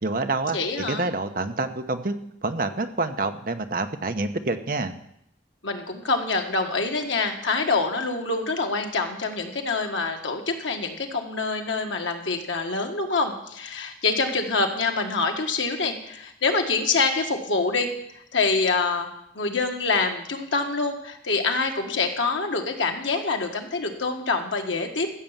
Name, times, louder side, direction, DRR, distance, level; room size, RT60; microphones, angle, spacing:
voice 1, 0.0-0.6 0.9-2.1 2.4-4.9, right 3 dB, 50° right, 7 dB, 0.9 m, -27 dB
voice 2, 0.5-1.1 5.6-17.9 18.3-19.1 19.3-25.1, left 3 dB, 90° left, 3 dB, 1.6 m, -26 dB
14.5 x 6.9 x 7.4 m, 0.76 s
head